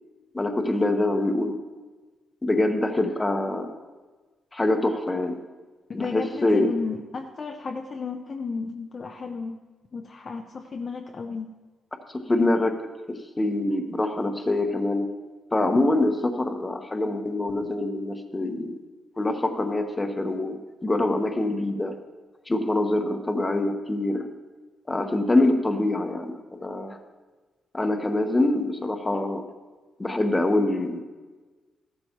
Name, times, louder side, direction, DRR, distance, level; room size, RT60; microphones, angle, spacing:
voice 1, 0.3-1.6 2.4-3.7 4.5-5.4 5.9-6.7 12.3-12.7 13.1-15.1 15.5-18.8 19.2-21.9 22.5-24.3 24.9-27.0 27.7-29.4 30.0-31.0, left 2 dB, 15° left, 5 dB, 0.9 m, -25 dB
voice 2, 6.0-9.6 9.9-11.5, left 4 dB, 35° left, 3 dB, 0.6 m, -33 dB
15.0 x 12.5 x 2.9 m, 1.3 s
cardioid pair, 160°, 0 cm